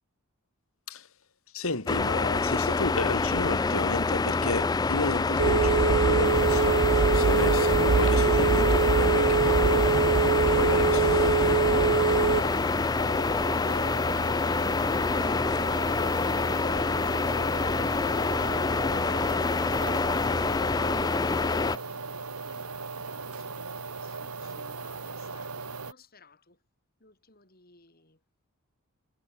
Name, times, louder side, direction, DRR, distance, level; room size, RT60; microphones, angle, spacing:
voice 1, 1.5-11.7 12.1-12.2, left 3 dB, 65° left, 2.3 m, -33 dB
sound 1, 1.9-21.8, left 4 dB, 15° left, 0.3 m, -26 dB
Telephone, 5.4-12.4, right 4 dB, 50° right, 0.5 m, -23 dB
sound 2, 6.2-25.9, right 4 dB, 80° right, 2.5 m, -38 dB
voice 2, 21.7-26.6 27.0-28.2, left 3 dB, 40° left, 8.0 m, -58 dB
head